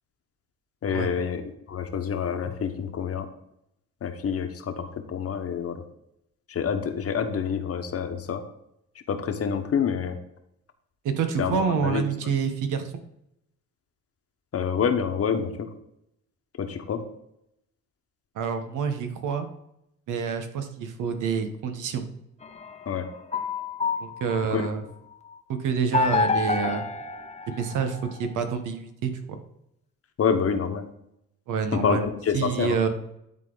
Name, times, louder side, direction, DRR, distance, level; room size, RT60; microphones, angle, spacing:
voice 1, 0.8-1.4 1.7-3.3 4.0-5.8 6.5-8.4 9.1-10.2 11.4-12.0 14.5-15.7 16.6-17.0 22.9-23.1 24.5-24.7 30.2-30.8 31.7-32.7, left 7 dB, 50° left, 7 dB, 1.2 m, -27 dB
voice 2, 11.0-13.0 18.3-19.5 20.1-22.0 24.0-24.8 25.5-26.8 27.5-29.4 31.5-32.0 32.3-32.9, right 6 dB, 85° right, 8 dB, 1.2 m, -27 dB
sound 1, 22.4-24.7 25.9-28.2, left 4 dB, 20° left, 0.7 m, -28 dB
11.0 x 4.0 x 3.9 m, 0.80 s
cardioid pair, 90°, 30 cm